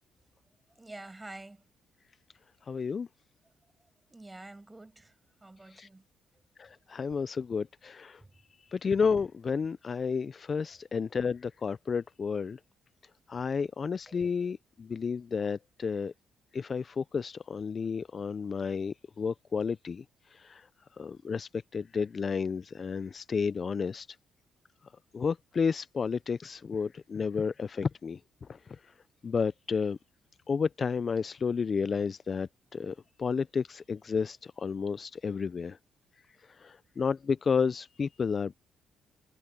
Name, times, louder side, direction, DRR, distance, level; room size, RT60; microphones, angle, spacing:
voice 1, 0.8-1.6 4.1-6.1 8.2-8.3 10.6-10.8 14.1-14.2, right 2 dB, 15° right, 7.4 m, -48 dB
voice 2, 2.7-3.1 5.8-5.9 6.6-8.2 8.7-12.6 13.3-16.1 16.5-20.0 20.3-20.7 21.0-24.1 25.1-28.2 28.5-28.6 29.2-30.0 30.5-35.8 36.6-38.5, left 5 dB, 40° left, 0.4 m, -31 dB
cardioid pair, 90°, 0 cm